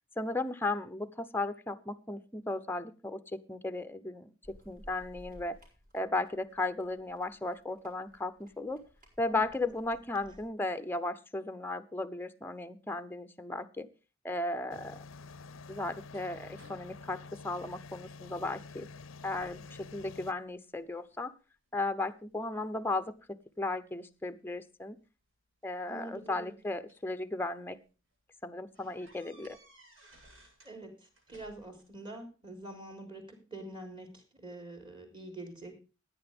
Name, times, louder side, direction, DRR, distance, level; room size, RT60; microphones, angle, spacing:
voice 1, 0.2-5.6 5.9-8.8 9.2-13.9 14.2-15.0 15.7-18.9 19.2-21.3 21.7-25.0 25.6-27.8 28.4-29.6, left 2 dB, 10° left, 10 dB, 0.7 m, -35 dB
sound 1, 4.4-10.4, equal, 40° right, 5.9 m, -58 dB
sound 2, 14.7-20.3, left 4 dB, 70° left, 0.6 m, -49 dB
sound 3, 14.8-18.3 18.7-19.1 19.3-20.0 20.5-21.2 21.8-23.2 24.4-24.5 25.7-27.1 27.7-27.8 28.1-28.2 28.7-30.8 31.0-31.9, right 1 dB, 70° right, 7.6 m, -61 dB
voice 2, 25.9-26.5 30.6-35.8, right 1 dB, 25° right, 4 dB, 3.6 m, -46 dB
16.5 x 9.7 x 3.5 m, 0.33 s
head